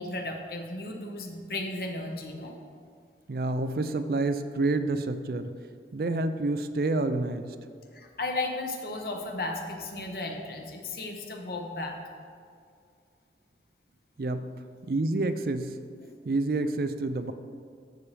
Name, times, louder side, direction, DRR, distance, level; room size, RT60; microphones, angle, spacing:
voice 1, 0.0-2.6 7.9-12.0 16.0-16.1, left 2 dB, 55° left, 2 dB, 1.1 m, -35 dB
voice 2, 3.3-5.6 5.9-7.5 14.2-14.5 14.8-15.8 16.2-17.3, right 2 dB, 55° right, 10 dB, 0.4 m, -28 dB
11.5 x 7.3 x 3.4 m, 2.2 s
head